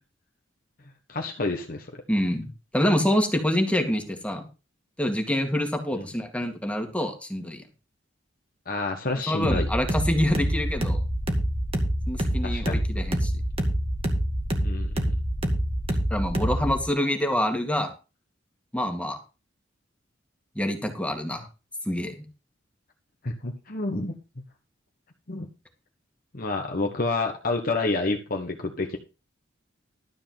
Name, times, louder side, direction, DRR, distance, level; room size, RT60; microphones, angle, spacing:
voice 1, 1.1-1.9 5.9-6.1 8.7-9.7 12.4-12.8 14.6-15.1 23.2-24.4 25.3-25.5 26.3-29.0, left 3 dB, 50° left, 2 dB, 1.4 m, -29 dB
voice 2, 2.1-4.4 5.0-7.6 9.3-11.0 12.1-13.3 16.1-17.9 18.7-19.2 20.6-21.5 21.9-22.2, left 1 dB, 5° left, 4 dB, 2.1 m, -26 dB
sound 1, 9.4-16.8, equal, 30° right, 2.1 m, -26 dB
13.0 x 4.7 x 7.8 m, 0.31 s
head